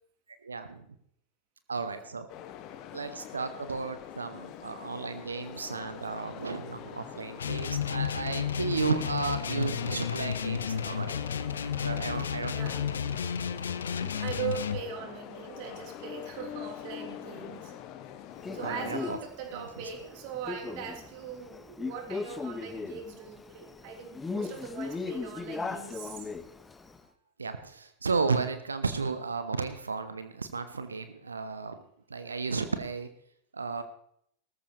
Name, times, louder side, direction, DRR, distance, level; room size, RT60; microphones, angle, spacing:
voice 1, 0.4-0.9 1.7-2.3 2.9-11.1 11.8-13.0 18.5-19.2 19.5-19.9 27.4-31.8 32.1-33.1 33.5-33.8, right 4 dB, 75° right, 10 dB, 0.9 m, -33 dB
sound 1, 2.3-19.2, left 10 dB, 40° left, 1.3 m, -44 dB
sound 2, 7.4-14.8, left 8 dB, 70° left, 0.8 m, -32 dB
voice 2, 12.5-12.9 14.2-17.8 18.5-26.3 32.2-32.4, right 7 dB, 45° right, 2 dB, 3.3 m, -40 dB
Male speech man speaking, 18.4-27.0, left 4 dB, 10° left, 1.0 m, -38 dB
18.0 x 14.0 x 3.1 m, 0.69 s
figure-of-eight pair, 90°, 0 cm